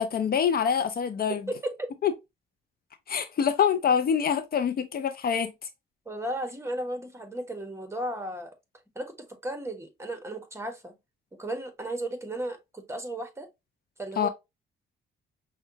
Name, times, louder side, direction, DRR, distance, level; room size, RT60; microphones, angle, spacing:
voice 1, 0.0-1.4 2.0-2.1 3.1-5.5 14.2-14.3, left 7 dB, 50° left, 0.6 m, -25 dB
voice 2, 1.3-1.7 6.0-8.5 8.9-11.0 11.4-13.5 14.0-14.3, right 1 dB, 15° right, 1.2 m, -34 dB
5.4 x 2.3 x 2.7 m
cardioid pair, 90°, 20 cm